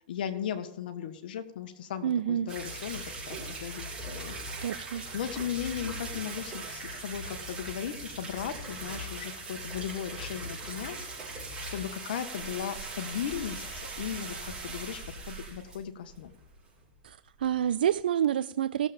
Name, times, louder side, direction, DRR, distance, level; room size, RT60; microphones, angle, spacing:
voice 1, 0.1-4.3 4.9-16.3, left 9 dB, 75° left, 1.4 m, -37 dB
voice 2, 2.0-2.5 4.6-5.0 17.0-18.9, right 10 dB, 85° right, 0.4 m, -28 dB
sound 1, 2.5-16.8 17.1-17.2 17.4-17.5 17.9-18.0, right 2 dB, 20° right, 5.7 m, -40 dB
18.5 x 7.5 x 3.6 m
hypercardioid pair, 125°, 5 cm